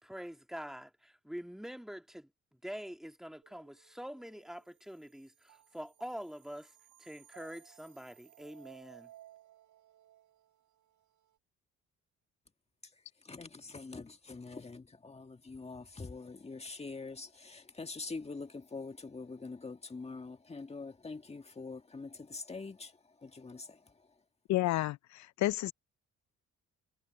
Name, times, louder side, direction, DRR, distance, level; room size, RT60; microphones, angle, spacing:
voice 1, 0.0-2.3 2.6-6.7 7.0-9.1, equal, ahead, 2.1 m, -45 dB
sound 1, 3.4-11.4, right 12 dB, 75° right, 6.1 m, -60 dB
voice 2, 12.8-24.2, left 3 dB, 20° left, 1.8 m, -45 dB
voice 3, 24.5-25.7, left 16 dB, 65° left, 0.4 m, -31 dB
cardioid pair, 90°, 30 cm